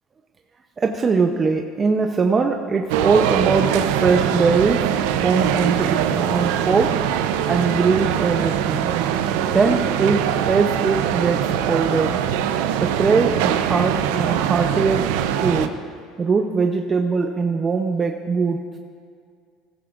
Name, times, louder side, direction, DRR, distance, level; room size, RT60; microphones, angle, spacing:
voice 1, 0.8-4.9 5.2-7.0 7.5-8.9 9.5-12.2 12.8-15.8 16.2-18.6, right 4 dB, 30° right, 4 dB, 0.7 m, -21 dB
sound 1, 2.9-15.7, right 10 dB, 80° right, 0.6 m, -22 dB
16.0 x 15.0 x 2.5 m, 2.2 s
supercardioid pair, 95°, 0 cm